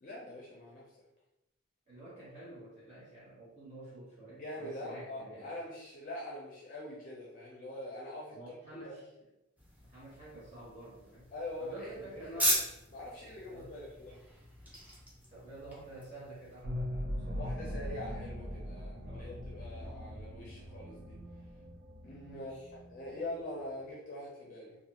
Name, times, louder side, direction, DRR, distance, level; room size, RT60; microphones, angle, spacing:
voice 1, 0.0-0.8 4.3-8.4 8.7-8.9 11.3-12.2 12.9-14.1 17.4-21.1 22.0-24.8, left 1 dB, 45° left, -4 dB, 0.5 m, -43 dB
voice 2, 1.9-5.5 8.3-9.1 9.8-11.3 11.6-12.6 13.5-13.8 15.3-17.5 19.0-19.4 22.1-22.7, right 1 dB, 35° right, -10 dB, 0.9 m, -49 dB
sound 1, 9.6-16.6, equal, 10° right, 0.5 m, -38 dB
sound 2, 16.6-23.6, equal, 75° right, 0.6 m, -41 dB
2.4 x 2.4 x 2.8 m, 0.93 s
head